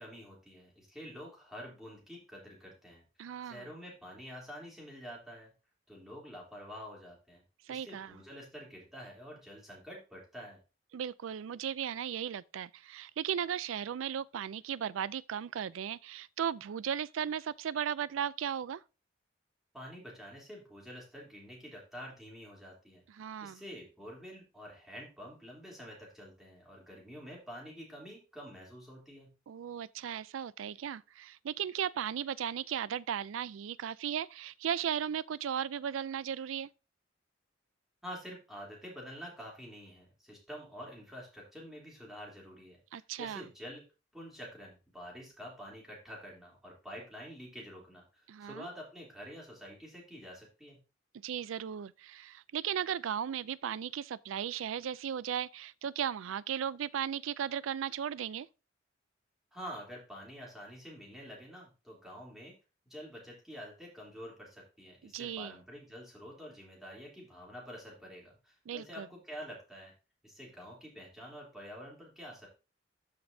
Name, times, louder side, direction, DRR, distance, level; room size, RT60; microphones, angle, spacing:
voice 1, 0.0-5.5 5.9-7.4 7.7-10.6 19.7-29.3 38.0-43.8 44.1-50.8 59.5-62.5 62.8-69.9 70.2-72.5, equal, ahead, 3.1 m, -48 dB
voice 2, 3.2-3.7 7.7-8.1 10.9-18.8 23.2-23.6 29.5-36.7 42.9-43.4 48.3-48.7 51.2-58.5 65.0-65.5 68.7-69.1, right 8 dB, 90° right, 0.4 m, -36 dB
13.0 x 5.2 x 2.7 m
head